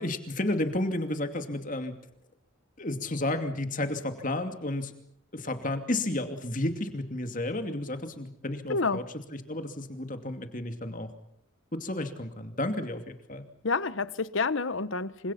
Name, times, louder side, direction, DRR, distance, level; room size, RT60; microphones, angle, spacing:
voice 1, 0.0-1.9 2.8-4.9 5.3-9.0 9.3-11.1 11.7-13.4, left 1 dB, 40° left, 7 dB, 2.6 m, -32 dB
voice 2, 13.6-15.3, left 4 dB, 65° left, 16 dB, 1.0 m, -28 dB
29.0 x 26.0 x 5.8 m, 0.71 s
head